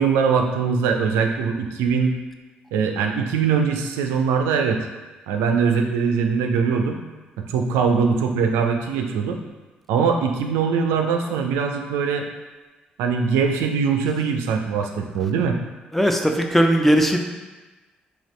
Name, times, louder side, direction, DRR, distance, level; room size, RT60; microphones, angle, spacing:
voice 1, 0.0-2.1 2.7-4.8 5.3-7.0 7.4-9.4 9.9-12.3 13.0-15.6, right 6 dB, 75° right, 4 dB, 0.4 m, -22 dB
voice 2, 15.9-17.2, equal, 5° left, 3 dB, 0.5 m, -18 dB
4.0 x 2.7 x 3.1 m, 1.2 s
hypercardioid pair, 45°, 4 cm